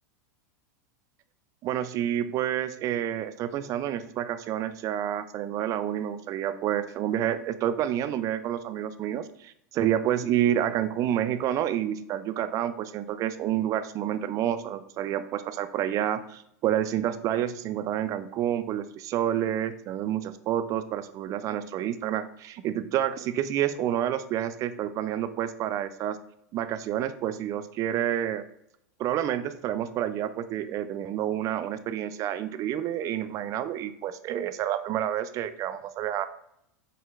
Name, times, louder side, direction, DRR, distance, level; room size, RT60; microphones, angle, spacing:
voice 1, 1.6-26.2 26.5-28.4 29.0-36.3, right 11 dB, 35° right, 12 dB, 0.3 m, -29 dB
5.4 x 3.8 x 2.4 m, 0.77 s
hypercardioid pair, 115°, 9 cm